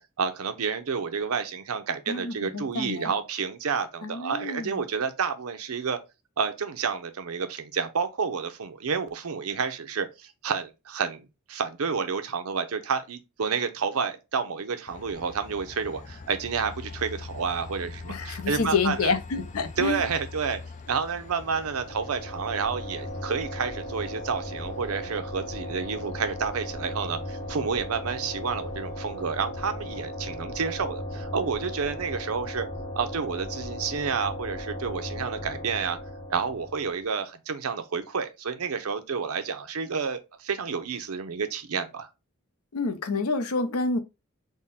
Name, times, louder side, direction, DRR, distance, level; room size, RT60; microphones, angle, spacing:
voice 1, 0.0-6.0 6.4-19.1 19.8-20.6 20.9-32.7 32.9-36.0 36.3-42.1, right 5 dB, 80° right, 0.6 m, -30 dB
voice 2, 2.1-3.1 4.0-4.9 18.1-20.0 42.7-44.0, left 4 dB, 80° left, 0.6 m, -28 dB
Train, 14.9-30.0, left 3 dB, 35° left, 0.4 m, -45 dB
sound 1, 21.2-37.0, left 1 dB, 20° left, 0.9 m, -37 dB
3.6 x 2.1 x 3.9 m
head